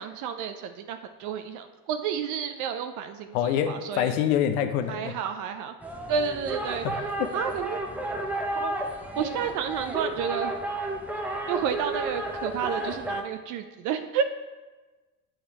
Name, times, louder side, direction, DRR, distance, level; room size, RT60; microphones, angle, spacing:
voice 1, 0.0-3.4 3.7-4.1 4.9-5.7 6.1-6.8 7.3-7.8 8.6-8.8 9.2-10.5 11.5-14.2, right 7 dB, 45° right, 8 dB, 0.5 m, -30 dB
voice 2, 3.3-5.1 6.8-7.3, left 9 dB, 70° left, 8 dB, 0.8 m, -26 dB
sound 1, 5.8-13.2, right 1 dB, 5° right, 0.6 m, -32 dB
8.8 x 5.0 x 2.9 m, 1.2 s
hypercardioid pair, 85°, 46 cm